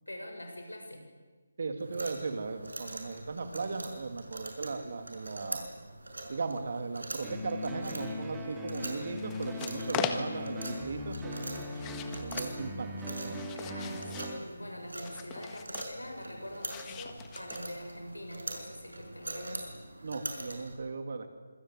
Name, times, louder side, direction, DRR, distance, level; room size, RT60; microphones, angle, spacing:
voice 1, 0.1-1.1 13.5-19.7, equal, 85° left, 3 dB, 7.5 m, -44 dB
voice 2, 1.6-5.7 6.3-11.9 12.2-13.4 20.0-21.3, right 4 dB, 50° right, 7 dB, 2.9 m, -37 dB
sound 1, 1.8-20.8, right 1 dB, 75° right, 6.0 m, -43 dB
sound 2, 7.2-14.4, left 1 dB, 10° right, 3.0 m, -40 dB
sound 3, 9.1-10.6 11.7-12.5 13.0-14.4 15.0-16.0 16.6-17.9, left 10 dB, 15° left, 1.5 m, -40 dB
26.5 x 21.5 x 8.4 m, 1.3 s
figure-of-eight pair, 150°, 0 cm